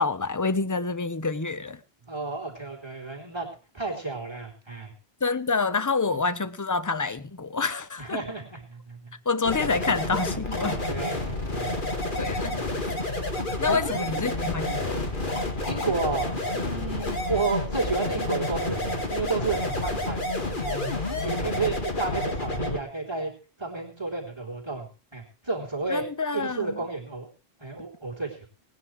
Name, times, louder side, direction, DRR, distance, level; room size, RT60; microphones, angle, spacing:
voice 1, 0.0-1.8 5.2-8.2 9.3-10.8 12.2-12.6 13.6-15.1 25.9-26.8, left 4 dB, 20° left, 0.6 m, -27 dB
voice 2, 2.1-3.5 3.7-4.9 6.1-6.2 8.0-9.1 10.6-11.8 13.7-14.1 15.7-20.3 20.6-21.0 21.2-23.3 23.6-26.0 26.3-27.3 27.6-28.5, right 3 dB, 25° right, 3.5 m, -32 dB
sound 1, 9.4-22.8, left 2 dB, 50° left, 2.1 m, -29 dB
19.0 x 10.0 x 4.6 m
omnidirectional pair, 1.1 m